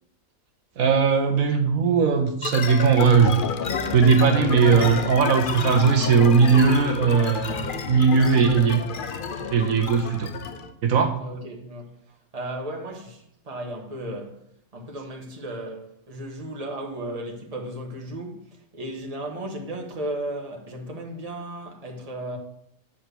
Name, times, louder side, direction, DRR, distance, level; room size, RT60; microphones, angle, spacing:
voice 1, 0.8-3.3 3.9-8.8 9.5-10.3 10.8-11.2, right 5 dB, 75° right, 1.2 m, -19 dB
sound 1, 2.4-10.7, left 6 dB, 50° left, 0.7 m, -30 dB
voice 2, 11.2-11.9 12.3-14.4 14.7-22.4, right 1 dB, 25° right, 1.5 m, -35 dB
10.0 x 4.5 x 6.8 m
omnidirectional pair, 1.5 m